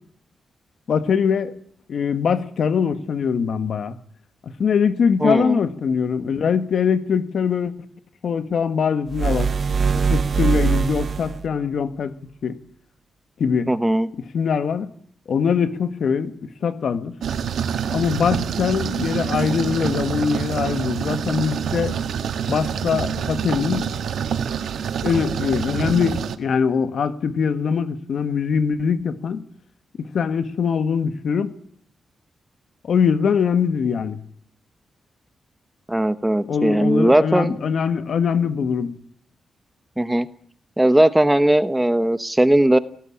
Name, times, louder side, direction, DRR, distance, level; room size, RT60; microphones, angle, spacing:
voice 1, 0.9-1.5 1.9-4.0 4.4-7.7 8.2-9.5 10.1-12.1 12.4-12.6 13.4-13.7 14.3-14.9 15.3-16.3 16.6-17.1 17.9-22.0 22.5-23.9 25.0-29.4 30.0-31.5 32.8-34.2 36.5-38.9, left 6 dB, 60° left, 1.8 m, -22 dB
voice 2, 5.2-5.6 13.7-14.1 35.9-37.6 40.0-40.3 40.8-42.8, right 1 dB, 10° right, 0.9 m, -18 dB
sound 1, 9.1-11.5, right 6 dB, 45° right, 0.9 m, -21 dB
sound 2, 17.2-26.4, right 8 dB, 85° right, 1.6 m, -26 dB
24.0 x 18.0 x 8.8 m
wide cardioid pair, 145°, 0 cm